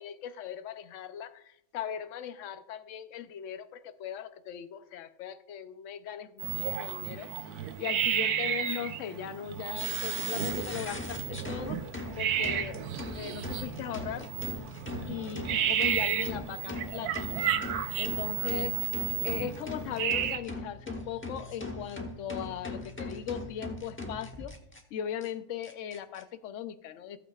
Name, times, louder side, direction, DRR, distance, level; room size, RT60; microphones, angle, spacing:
voice 1, 0.0-11.9 12.2-12.8 13.1-14.3 15.1-18.8 19.2-24.5 24.9-27.2, left 9 dB, 60° left, 11 dB, 0.9 m, -39 dB
sound 1, 6.4-20.4, right 9 dB, 90° right, 1.2 m, -32 dB
sound 2, 9.7-24.8 25.2-25.3 25.6-26.2, left 2 dB, 10° left, 0.9 m, -40 dB
15.0 x 8.8 x 2.4 m, 0.77 s
omnidirectional pair, 1.6 m